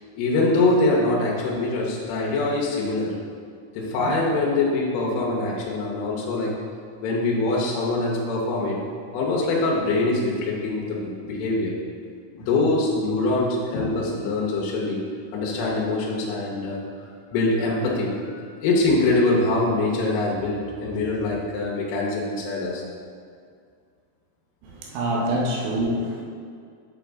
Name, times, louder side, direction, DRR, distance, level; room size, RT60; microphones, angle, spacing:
voice 1, 0.1-3.1 3.7-6.6 7.0-8.8 9.1-11.8 12.3-15.1 15.3-16.8 17.3-22.8, left 2 dB, 85° left, -4 dB, 3.3 m, -24 dB
voice 2, 24.6-26.2, right 1 dB, 75° right, -2 dB, 2.6 m, -25 dB
8.3 x 5.3 x 3.5 m, 2.2 s
omnidirectional pair, 5.4 m